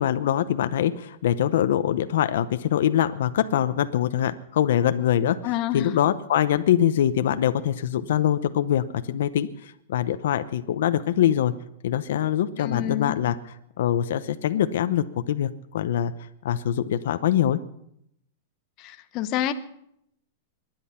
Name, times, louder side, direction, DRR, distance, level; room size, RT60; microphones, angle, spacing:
voice 1, 0.0-5.4 5.7-9.5 9.9-11.5 11.8-13.4 13.8-16.1 16.4-17.6, left 10 dB, 70° left, 11 dB, 0.8 m, -23 dB
voice 2, 5.4-5.9 12.6-13.2 18.8-19.5, left 12 dB, 35° left, 9 dB, 0.9 m, -28 dB
24.0 x 10.5 x 5.7 m, 0.75 s
supercardioid pair, 155°, 0 cm